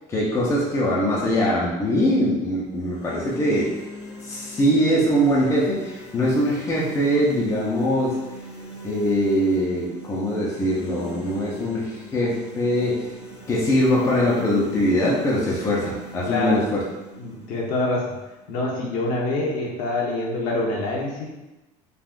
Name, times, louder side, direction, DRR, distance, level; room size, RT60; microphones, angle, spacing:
voice 1, 0.1-3.7 4.2-8.2 8.8-13.1 13.5-16.8, equal, 20° left, -6 dB, 0.5 m, -22 dB
sound 1, 2.6-18.7, right 1 dB, 80° left, 1.1 m, -41 dB
voice 2, 16.2-16.7 17.2-18.2 18.5-21.3, left 2 dB, 60° left, -3 dB, 0.8 m, -25 dB
3.6 x 2.4 x 2.4 m, 1.0 s
cardioid pair, 160°, 15 cm